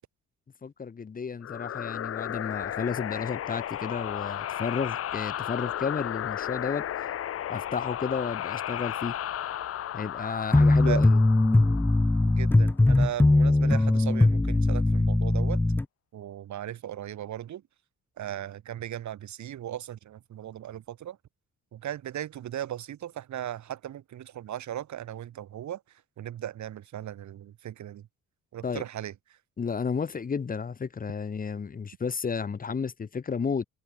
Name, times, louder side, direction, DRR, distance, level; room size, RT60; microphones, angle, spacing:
voice 1, 0.6-7.1 7.5-9.2 9.9-11.2 28.6-28.8 29.6-33.6, left 5 dB, 30° left, 1.0 m, -32 dB
sound 1, 1.4-12.7, left 11 dB, 50° left, 0.7 m, -34 dB
sound 2, 10.5-15.8, left 2 dB, 5° left, 0.4 m, -21 dB
voice 2, 12.2-15.6 16.1-17.6 18.2-21.2 21.7-28.1 28.5-29.4, right 11 dB, 70° right, 3.2 m, -37 dB
cardioid pair, 90°, 30 cm